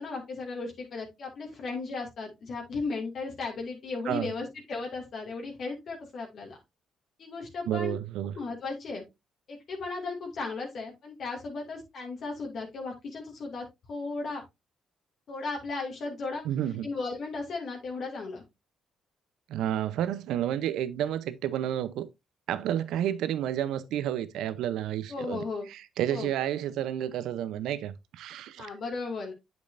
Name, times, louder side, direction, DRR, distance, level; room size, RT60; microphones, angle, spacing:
voice 1, 0.0-6.6 7.2-8.0 8.3-9.1 9.5-14.4 15.3-16.4 16.8-18.4 25.1-25.7 26.1-26.3 28.6-29.3, left 3 dB, 60° left, 2.4 m, -35 dB
voice 2, 7.7-8.3 16.4-16.9 19.5-22.1 22.5-28.7, right 11 dB, 75° right, 0.6 m, -31 dB
8.5 x 6.2 x 2.6 m
hypercardioid pair, 55°, 0 cm